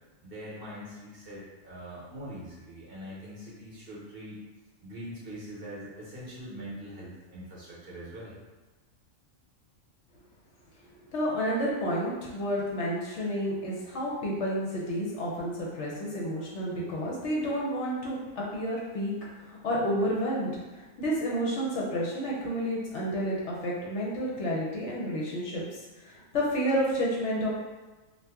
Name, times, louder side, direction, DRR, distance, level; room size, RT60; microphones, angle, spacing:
voice 1, 0.2-4.4 4.8-8.3, equal, 50° right, -6 dB, 0.9 m, -43 dB
voice 2, 11.1-25.6 26.0-27.5, equal, 65° left, -4 dB, 0.9 m, -30 dB
2.7 x 2.4 x 3.4 m, 1.2 s
omnidirectional pair, 1.4 m